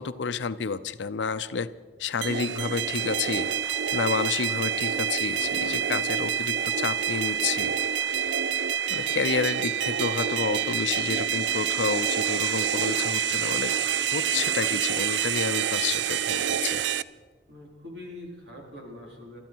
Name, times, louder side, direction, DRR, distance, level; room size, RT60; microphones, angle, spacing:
voice 1, 0.0-1.7 2.0-3.5 3.9-7.8 8.1-8.3 8.9-13.7 14.1-16.8, left 5 dB, 90° left, 13 dB, 0.5 m, -30 dB
sound 1, 2.2-17.0, right 8 dB, 85° right, 0.5 m, -27 dB
voice 2, 17.5-19.4, left 1 dB, 70° right, -1 dB, 3.9 m, -44 dB
24.0 x 13.0 x 4.6 m, 1.4 s
head